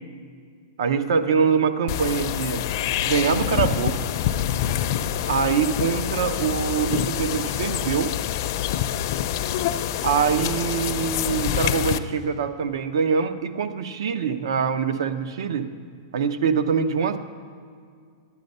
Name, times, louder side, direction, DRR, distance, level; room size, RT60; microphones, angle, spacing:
voice 1, 0.8-2.6 3.0-4.0 5.3-8.1 10.0-15.7 16.1-17.2, right 6 dB, 75° right, 10 dB, 0.7 m, -24 dB
sound 1, 1.9-12.0, left 11 dB, 50° left, 0.4 m, -26 dB
9.5 x 9.3 x 5.4 m, 2.2 s
hypercardioid pair, 155°, 2 cm